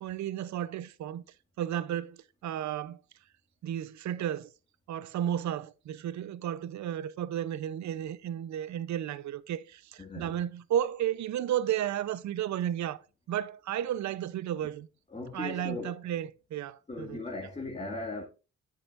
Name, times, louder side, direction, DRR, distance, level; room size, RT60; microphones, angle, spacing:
voice 1, 0.0-1.2 1.6-3.0 3.6-4.5 4.9-13.0 13.3-14.9 15.3-17.2, right 10 dB, 70° right, 0.8 m, -33 dB
voice 2, 10.0-10.4 15.1-16.0 16.9-18.2, left 2 dB, 20° left, 2.2 m, -38 dB
10.0 x 8.9 x 2.6 m
cardioid pair, 90°, 30 cm